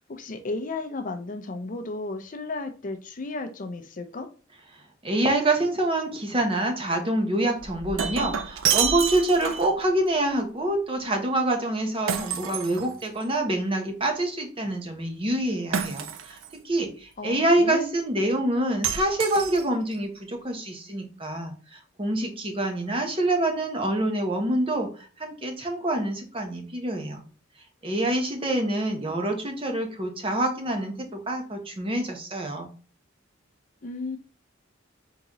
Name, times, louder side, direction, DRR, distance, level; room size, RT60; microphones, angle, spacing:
voice 1, 0.0-4.3 17.2-17.9 33.8-34.2, left 3 dB, 40° left, 0.5 m, -34 dB
voice 2, 5.0-24.9 25.2-27.2 27.8-32.7, right 1 dB, 25° right, 0.8 m, -26 dB
Shatter, 7.6-9.8 12.1-13.4 15.7-16.5 18.8-19.9, right 7 dB, 80° right, 0.5 m, -28 dB
3.9 x 3.7 x 2.9 m
head